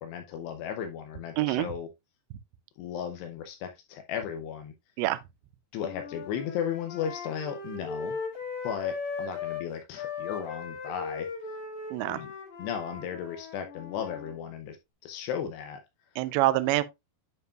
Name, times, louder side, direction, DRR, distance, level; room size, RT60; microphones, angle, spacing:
voice 1, 0.0-1.9 2.8-4.7 5.7-8.2 8.6-11.3 12.1-12.3 12.6-14.8 15.0-15.8, left 8 dB, 80° left, 2.4 m, -35 dB
voice 2, 1.4-1.7 5.0-5.2 11.9-12.2 16.2-16.8, right 16 dB, 85° right, 2.6 m, -25 dB
sound 1, 5.8-9.7 10.0-14.3, left 5 dB, 60° left, 4.1 m, -38 dB
9.4 x 5.4 x 2.3 m
omnidirectional pair, 5.6 m